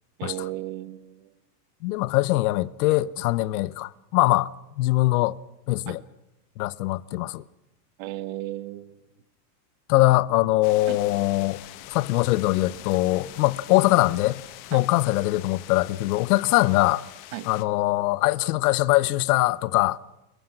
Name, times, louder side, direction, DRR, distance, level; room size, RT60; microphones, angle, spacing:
voice 1, 0.2-1.3 5.9-6.0 8.0-9.0 10.9-11.0 14.7-14.8 17.3-17.5, right 17 dB, 50° right, 1.6 m, -35 dB
voice 2, 1.8-4.5 4.8-5.4 5.7-6.0 6.6-7.4 9.9-11.6 11.9-14.4 14.7-17.0 17.4-20.0, left 18 dB, 60° left, 0.9 m, -22 dB
sound 1, 10.6-17.6, left 15 dB, 40° left, 1.3 m, -44 dB
27.0 x 23.0 x 6.0 m
supercardioid pair, 160°, 49 cm